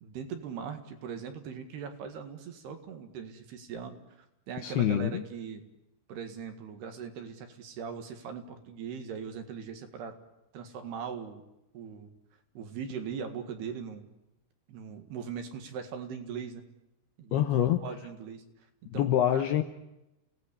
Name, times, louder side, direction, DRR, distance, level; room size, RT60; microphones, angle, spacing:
voice 1, 0.0-4.0 4.5-5.6 6.1-10.1 10.5-11.4 11.7-12.1 12.6-14.1 14.7-16.7 17.2-18.4 18.9-19.4, right 7 dB, 60° right, 6 dB, 3.5 m, -40 dB
voice 2, 4.6-5.2 17.3-17.9 18.9-19.6, left 11 dB, 75° left, 7 dB, 2.5 m, -26 dB
29.5 x 18.0 x 8.5 m, 0.94 s
omnidirectional pair, 5.6 m